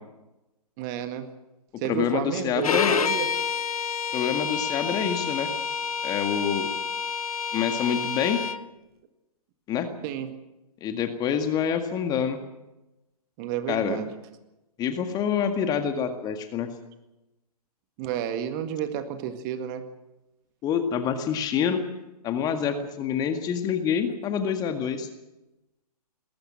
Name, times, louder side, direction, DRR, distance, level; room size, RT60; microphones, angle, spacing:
voice 1, 0.8-1.3 1.8-3.3 10.0-10.3 13.4-14.1 18.0-19.9, right 10 dB, 30° right, 9 dB, 1.9 m, -31 dB
voice 2, 1.7-3.0 4.1-5.5 6.0-6.7 7.5-8.4 9.7-9.9 10.8-12.4 13.7-14.0 14.8-16.7 20.6-21.8 22.2-25.1, left 8 dB, 20° left, 7 dB, 1.9 m, -26 dB
Bowed string instrument, 2.6-8.6, left 6 dB, 65° left, 1.1 m, -28 dB
20.0 x 18.5 x 7.6 m, 0.97 s
figure-of-eight pair, 125°, 20 cm